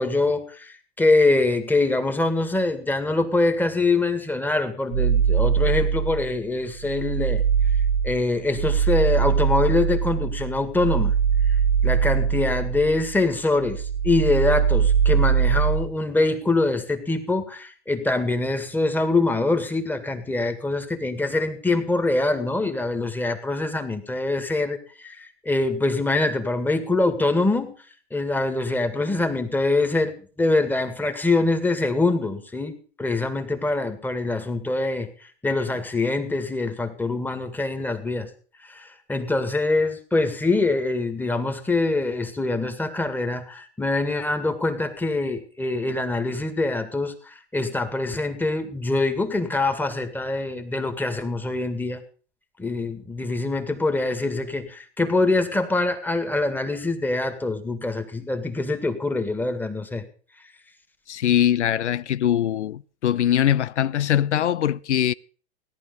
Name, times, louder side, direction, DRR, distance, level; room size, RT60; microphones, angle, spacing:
voice 1, 0.0-7.4 8.0-11.1 11.8-27.7 28.1-38.3 38.6-52.0 52.6-60.1, left 2 dB, 5° left, 2.0 m, -24 dB
sound 1, 4.9-6.3 6.7-13.3 13.6-15.9, right 7 dB, 75° right, 1.6 m, -22 dB
voice 2, 61.1-65.1, left 10 dB, 85° left, 0.6 m, -22 dB
17.5 x 11.0 x 5.3 m
hypercardioid pair, 115°, 34 cm